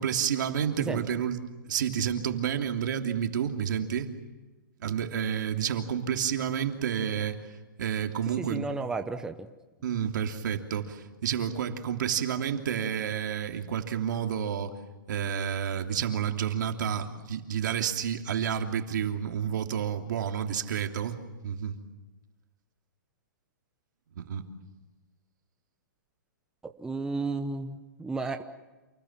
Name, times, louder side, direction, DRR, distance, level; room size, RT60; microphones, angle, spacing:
voice 1, 0.0-1.4 1.7-4.1 4.8-7.4 7.8-8.7 9.8-14.7 15.1-21.8 24.2-24.4, right 8 dB, 65° right, 5 dB, 3.0 m, -30 dB
voice 2, 8.4-9.3 26.6-28.4, right 3 dB, 5° right, 7 dB, 0.9 m, -33 dB
28.5 x 21.0 x 7.5 m, 1.2 s
hypercardioid pair, 155°, 11 cm